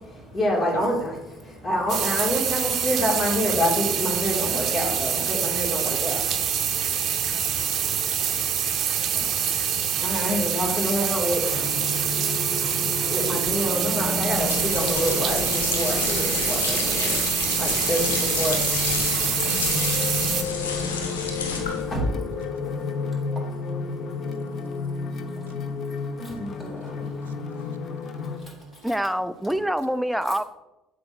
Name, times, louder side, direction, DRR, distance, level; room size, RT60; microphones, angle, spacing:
voice 1, 0.1-18.6 19.3-19.4 21.8-22.1 26.2-27.1 28.4-28.5 28.8-28.9, equal, 35° left, -2 dB, 2.7 m, -28 dB
sound 1, 1.9-20.4, right 8 dB, 55° right, 0.7 m, -26 dB
voice 2, 6.1-10.3 11.9-13.1 18.8-21.9 22.4-28.9, right 9 dB, 85° right, 12 dB, 0.3 m, -54 dB
sound 2, 11.4-28.4, left 4 dB, 50° left, 0.8 m, -32 dB
sound 3, 14.2-22.0, left 4 dB, 85° left, 0.8 m, -29 dB
voice 3, 28.8-30.4, equal, 5° right, 13 dB, 0.5 m, -25 dB
7.6 x 3.2 x 6.0 m, 0.97 s
hypercardioid pair, 55°, 0 cm